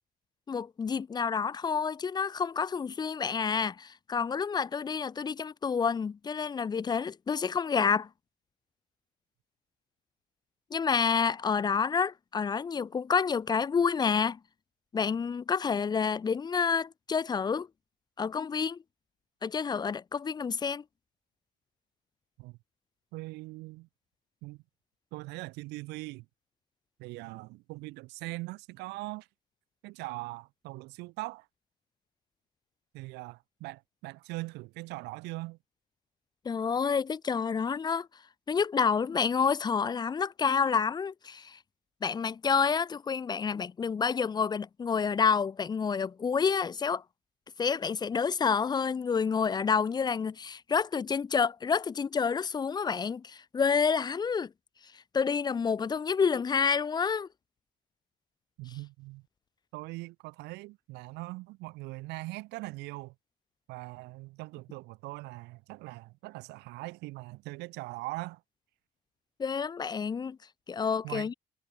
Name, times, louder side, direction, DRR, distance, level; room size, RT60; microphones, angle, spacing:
voice 1, 0.5-8.1 10.7-14.4 14.9-17.7 18.2-18.8 19.4-20.8 36.4-38.1 38.5-41.6 42.0-47.0 47.6-54.5 55.1-57.3 69.4-70.4 70.7-71.3, left 6 dB, 25° left, 0.5 m, -29 dB
voice 2, 23.1-23.9 24.4-24.6 25.1-26.3 27.0-29.3 29.8-31.5 32.9-35.6 58.6-59.2 59.7-63.1 63.7-68.4 71.0-71.3, right 22 dB, 85° right, 0.4 m, -41 dB
cardioid pair, 110°, 17 cm